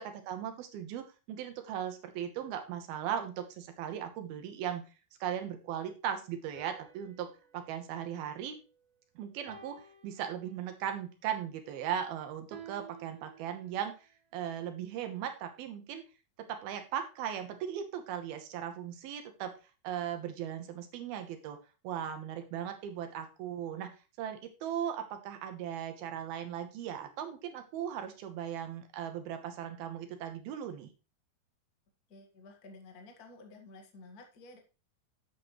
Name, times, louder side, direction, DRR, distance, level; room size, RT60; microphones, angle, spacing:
voice 1, 0.0-4.8 5.2-8.6 9.2-9.8 10.0-16.0 16.5-19.5 19.8-21.6 21.8-23.9 24.2-30.9, right 9 dB, 80° right, 6 dB, 2.9 m, -38 dB
sound 1, 6.5-8.9 9.5-10.9 12.5-14.0, right 7 dB, 60° right, 3.4 m, -54 dB
voice 2, 32.1-34.6, left 3 dB, 40° left, 2 dB, 1.3 m, -52 dB
11.0 x 7.9 x 3.1 m, 0.32 s
omnidirectional pair, 4.4 m